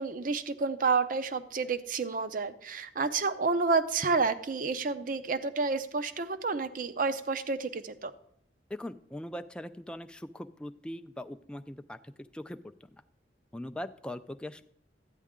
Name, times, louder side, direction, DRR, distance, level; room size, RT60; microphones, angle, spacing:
voice 1, 0.0-8.1, right 4 dB, 50° right, 11 dB, 0.6 m, -30 dB
voice 2, 8.7-12.9 13.5-14.6, left 1 dB, 5° left, 8 dB, 0.3 m, -41 dB
12.5 x 9.2 x 3.7 m, 0.69 s
head